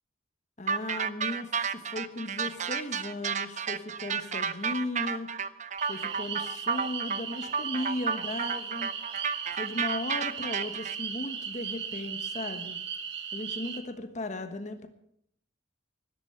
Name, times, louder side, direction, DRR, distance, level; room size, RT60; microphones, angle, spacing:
voice 1, 0.6-5.3 5.9-8.9 9.2-9.3 9.5-12.8 13.3-14.9, left 1 dB, 35° left, 8 dB, 1.3 m, -36 dB
sound 1, 0.7-10.9, right 6 dB, 35° right, 0.6 m, -32 dB
sound 2, 5.8-13.8, right 7 dB, 60° right, 1.6 m, -37 dB
13.0 x 12.0 x 7.0 m, 0.72 s
head